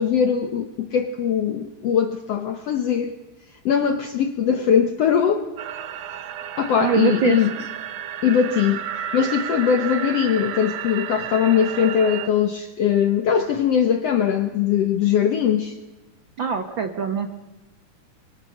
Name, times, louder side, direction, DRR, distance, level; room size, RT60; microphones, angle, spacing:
voice 1, 0.0-3.1 3.6-5.5 6.6-7.5 8.2-8.9 9.1-15.8, left 8 dB, 75° left, 1.5 m, -21 dB
sound 1, 5.6-12.3, right 9 dB, 65° right, 1.7 m, -32 dB
voice 2, 6.8-7.4 16.4-17.3, right 7 dB, 90° right, 1.0 m, -23 dB
24.5 x 24.5 x 6.6 m
omnidirectional pair, 4.2 m